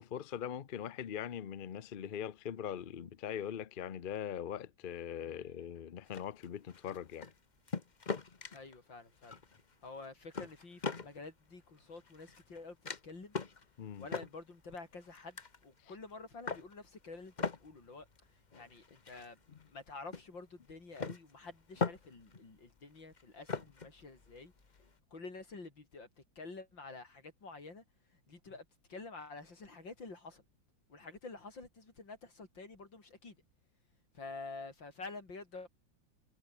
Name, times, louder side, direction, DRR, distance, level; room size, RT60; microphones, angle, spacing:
voice 1, 0.0-7.3 13.8-14.1 15.8-15.9 19.5-19.6, left 9 dB, 60° left, 0.5 m, -41 dB
voice 2, 5.2-5.7 8.5-9.4 9.8-12.8 13.0-13.4 14.0-18.1 18.5-24.5 25.1-26.1 26.4-27.8 28.1-30.4 30.9-33.4 34.1-35.7, left 3 dB, 80° left, 5.5 m, -49 dB
sound 1, 6.1-7.4 7.7-8.8 9.2-9.7 10.0-11.2 11.8-12.6 12.8-13.0 13.3-13.6 14.0-15.6 16.1-16.7 17.2-19.9 20.1-20.2 20.9-22.4 22.7-24.9, left 4 dB, 30° left, 1.1 m, -41 dB
omnidirectional pair, 2.0 m